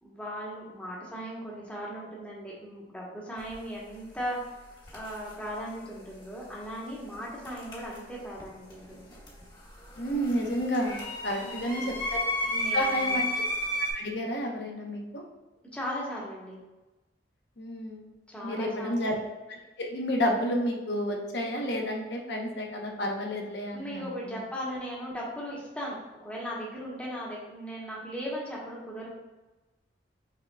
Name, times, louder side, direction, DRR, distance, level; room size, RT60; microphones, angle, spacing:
voice 1, 0.0-4.5 4.9-9.1 11.4-12.1 12.4-13.2 15.7-16.6 18.3-19.1 23.7-29.1, equal, 5° left, -5 dB, 1.0 m, -38 dB
sound 1, 3.4-3.5 4.8-5.3 7.4-8.4 8.7-13.9, left 1 dB, 25° left, 1.0 m, -33 dB
voice 2, 10.0-12.2 12.7-13.2 13.9-15.2 17.6-18.0 18.4-19.1 19.5-19.6 19.9-24.0, equal, 65° left, 1 dB, 0.8 m, -30 dB
5.7 x 3.6 x 2.2 m, 1.1 s
head